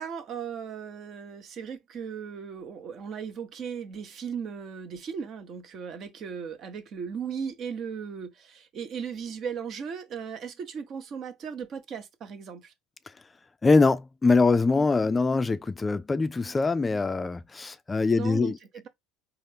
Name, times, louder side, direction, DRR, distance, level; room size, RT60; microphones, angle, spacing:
voice 1, 0.0-12.7 18.1-18.9, right 7 dB, 50° right, 0.9 m, -37 dB
voice 2, 13.6-18.6, left 3 dB, 20° left, 0.3 m, -23 dB
4.1 x 2.4 x 3.3 m
hypercardioid pair, 80°, 0 cm